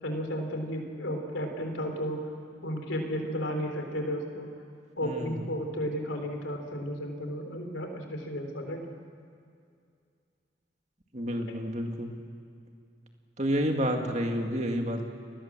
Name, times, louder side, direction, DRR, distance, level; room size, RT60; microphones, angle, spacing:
voice 1, 0.0-2.2 2.6-4.5 5.0-8.8, equal, 85° left, 3 dB, 3.8 m, -33 dB
voice 2, 5.0-5.4 11.1-12.2 13.4-15.0, equal, 35° right, 3 dB, 2.2 m, -29 dB
30.0 x 20.0 x 7.5 m, 2.4 s
head